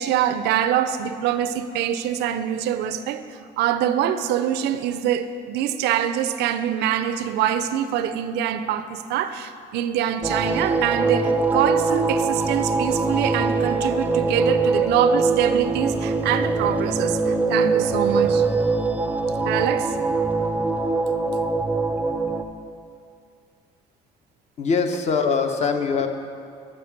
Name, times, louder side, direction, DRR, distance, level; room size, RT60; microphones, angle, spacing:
voice 1, 0.0-18.5 19.4-20.0, right 10 dB, 80° right, 11 dB, 0.4 m, -24 dB
sound 1, 10.2-22.4, right 3 dB, 10° right, 0.4 m, -22 dB
voice 2, 24.6-26.1, left 5 dB, 40° left, 6 dB, 0.6 m, -22 dB
6.6 x 4.9 x 5.7 m, 2.3 s
cardioid pair, 110°, 17 cm